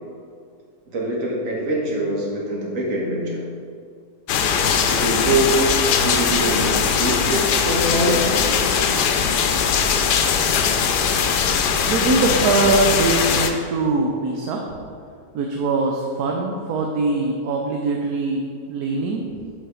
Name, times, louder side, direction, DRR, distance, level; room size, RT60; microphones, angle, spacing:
voice 1, 0.9-3.5 4.9-5.6 6.0-8.4, right 1 dB, 55° right, -3 dB, 1.7 m, -24 dB
sound 1, 4.3-13.5, left 6 dB, 85° left, 1.2 m, -20 dB
voice 2, 11.9-14.6 15.3-19.3, right 3 dB, 70° right, 1 dB, 1.1 m, -22 dB
5.6 x 5.5 x 4.8 m, 2.2 s
omnidirectional pair, 1.7 m